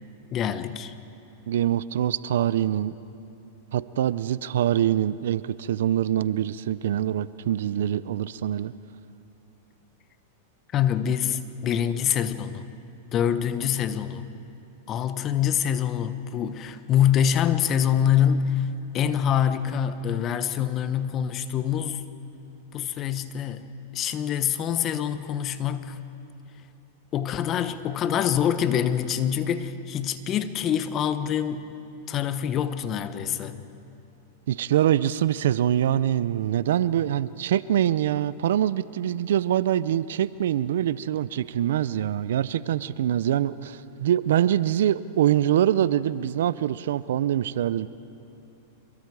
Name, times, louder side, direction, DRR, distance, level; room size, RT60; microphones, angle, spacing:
voice 1, 0.3-0.9 10.7-12.6 13.1-14.2 14.9-18.7 18.9-22.1 22.7-23.7 23.9-26.0 27.1-31.6 32.1-33.7, left 9 dB, 35° left, 12 dB, 1.1 m, -25 dB
voice 2, 1.5-3.0 3.7-8.7 34.5-47.9, right 11 dB, 75° right, 17 dB, 0.6 m, -24 dB
26.5 x 23.0 x 4.9 m, 2.9 s
hypercardioid pair, 120°, 0 cm